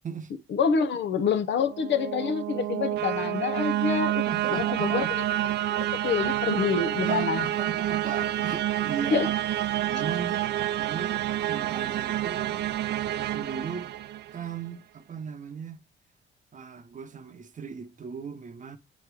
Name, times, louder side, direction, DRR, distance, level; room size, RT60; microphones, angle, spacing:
voice 1, 0.5-4.3 4.5-5.0 5.9-7.5 9.1-9.3, left 6 dB, 65° left, 0.8 m, -26 dB
sound 1, 1.5-14.5, right 13 dB, 60° right, 0.4 m, -28 dB
voice 2, 4.3-5.2 7.0-12.6 13.2-13.9 14.3-15.8 16.5-18.8, right 6 dB, 40° right, 0.8 m, -37 dB
8.5 x 3.1 x 4.7 m
cardioid pair, 90°, 20 cm